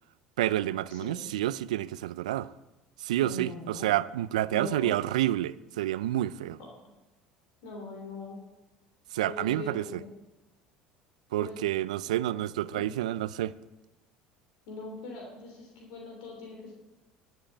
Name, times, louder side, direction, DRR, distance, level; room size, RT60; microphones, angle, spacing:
voice 1, 0.4-2.5 3.0-6.6 9.1-10.0 11.3-13.5, right 14 dB, 80° right, 0.4 m, -29 dB
voice 2, 0.9-1.3 3.2-3.9 4.5-4.9 7.6-8.4 9.2-10.1 11.4-11.6 12.7-12.8 14.7-16.7, left 2 dB, 75° left, 3.1 m, -41 dB
12.0 x 7.6 x 8.4 m
hypercardioid pair, 70°, 4 cm